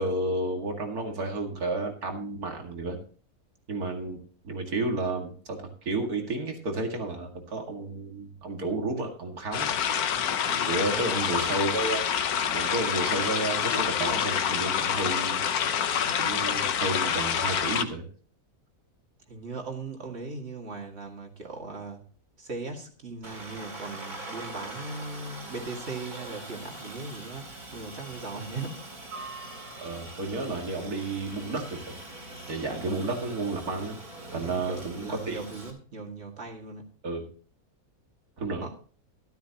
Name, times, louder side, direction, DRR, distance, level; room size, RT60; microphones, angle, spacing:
voice 1, 0.0-3.0 3.7-4.2 4.4-9.7 10.7-12.0 12.5-15.4 16.2-18.0 29.8-31.9 32.5-34.0 34.3-35.4 37.0-37.3 38.4-38.6, right 2 dB, 80° right, 2 dB, 2.6 m, -31 dB
sound 1, 9.5-17.8, left 8 dB, 80° left, 1.4 m, -27 dB
voice 2, 10.5-11.3 19.3-22.0 22.4-28.8 32.7-32.8 34.4-36.9 38.6-38.7, right 3 dB, 45° right, 2 dB, 2.4 m, -39 dB
Aircraft, 23.2-35.7, right 2 dB, 60° right, 3.7 m, -42 dB
13.0 x 12.5 x 2.9 m, 0.41 s
omnidirectional pair, 1.6 m